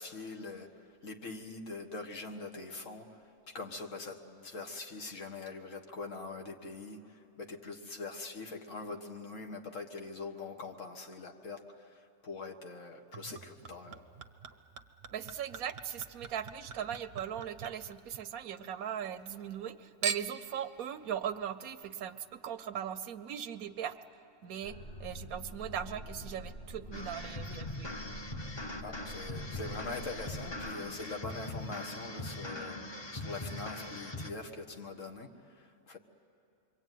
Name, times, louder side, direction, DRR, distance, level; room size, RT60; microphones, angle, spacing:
voice 1, 0.0-3.2 3.5-14.1 28.8-36.0, left 3 dB, 60° left, 4 dB, 1.8 m, -43 dB
Chink clink / Liquid, 13.1-18.6 19.0-19.7 20.0-20.5 21.3-21.4, right 7 dB, 50° right, 1.0 m, -43 dB
voice 2, 15.1-23.9 24.4-24.7 25.0-27.9, right 9 dB, 75° right, 11 dB, 1.3 m, -39 dB
sound 1, 24.6-30.7, equal, 40° left, 3.0 m, -47 dB
sound 2, 26.9-34.3, left 2 dB, 20° left, 0.9 m, -41 dB
27.0 x 23.5 x 9.2 m, 2.8 s
omnidirectional pair, 1.5 m